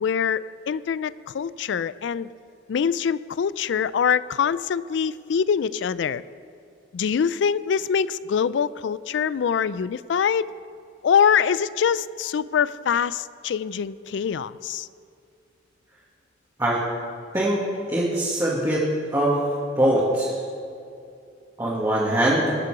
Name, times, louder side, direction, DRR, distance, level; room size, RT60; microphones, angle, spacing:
voice 1, 0.0-2.3 2.7-6.2 6.9-10.5 11.0-14.9, left 7 dB, 70° left, 18 dB, 0.3 m, -24 dB
voice 2, 17.9-18.8 19.1-19.4 19.8-20.4 21.6-22.5, right 1 dB, 20° right, -7 dB, 1.9 m, -22 dB
19.5 x 6.8 x 4.8 m, 2.4 s
head